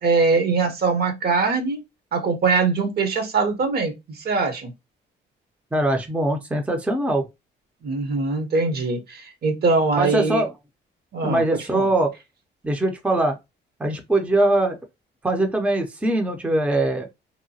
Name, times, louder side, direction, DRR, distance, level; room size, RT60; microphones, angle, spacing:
voice 1, 0.0-1.8 2.1-4.7 7.8-10.4 11.1-11.4 11.7-11.9, right 4 dB, 55° right, 0.8 m, -22 dB
voice 2, 5.7-7.3 10.0-10.5 11.2-12.1 12.6-13.3 13.8-14.8 15.2-17.1, right 1 dB, 5° right, 0.5 m, -22 dB
2.8 x 2.1 x 2.7 m
cardioid pair, 90°, 20 cm